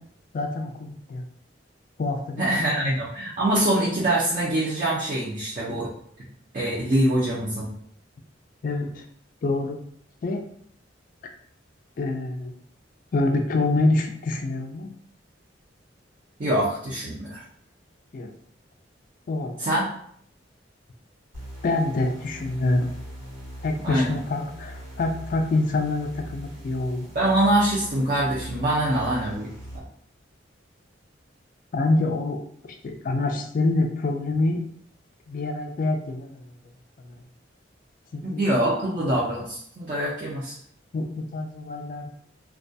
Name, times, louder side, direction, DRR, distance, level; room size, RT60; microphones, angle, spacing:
voice 1, 0.3-1.2 2.0-2.9 5.7-5.8 8.6-9.0 9.4-9.8 10.2-10.4 11.2-11.3 12.0-12.6 13.1-14.9 18.1-18.3 19.3-19.5 21.6-22.9 23.6-27.1 31.7-34.6 35.3-36.5 37.0-37.2 38.1-38.5 40.9-42.1, left 2 dB, 45° left, 4 dB, 0.3 m, -26 dB
voice 2, 2.4-5.9 6.5-7.7 16.4-17.4 19.6-19.8 23.8-24.2 27.1-29.5 38.2-40.5, right 1 dB, 40° right, -7 dB, 0.5 m, -24 dB
sound 1, 21.3-29.8, equal, 85° right, 1.2 m, -41 dB
2.3 x 2.2 x 2.6 m, 0.65 s
head